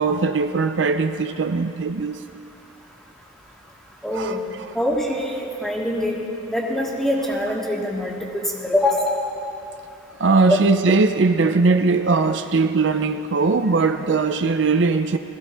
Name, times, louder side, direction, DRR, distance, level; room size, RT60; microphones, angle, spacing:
voice 1, 0.0-2.2 4.2-4.4 10.2-15.2, right 4 dB, 70° right, 0.6 m, -20 dB
voice 2, 4.0-4.4 4.7-6.2 6.5-9.2 10.5-10.6, left 1 dB, ahead, 2.1 m, -23 dB
21.5 x 15.0 x 3.4 m
head